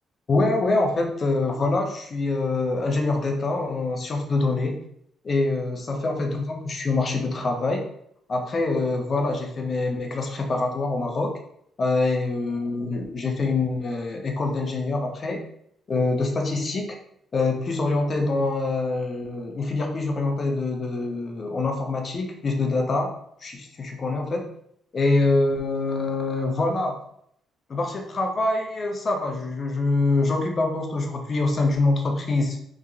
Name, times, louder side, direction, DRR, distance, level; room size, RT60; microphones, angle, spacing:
voice 1, 0.3-4.8 5.2-7.8 8.3-11.4 11.8-15.4 15.9-16.9 17.3-23.1 23.4-24.5 24.9-27.0 27.7-32.6, left 3 dB, 40° left, 3 dB, 0.5 m, -25 dB
2.9 x 2.4 x 2.4 m, 0.71 s
cardioid pair, 90°, 0 cm